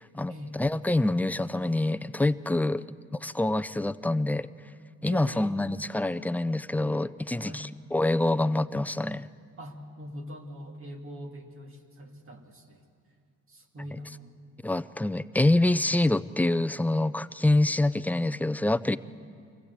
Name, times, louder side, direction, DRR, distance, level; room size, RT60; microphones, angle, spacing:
voice 1, 0.0-0.3 0.6-4.5 5.0-9.3 14.6-19.0, left 2 dB, 5° left, 15 dB, 0.4 m, -26 dB
voice 2, 5.0-5.7 7.4-7.7 9.6-12.8 13.5-14.4, equal, 45° right, 2 dB, 2.3 m, -42 dB
24.5 x 16.0 x 8.1 m, 2.3 s
cardioid pair, 90°, 30 cm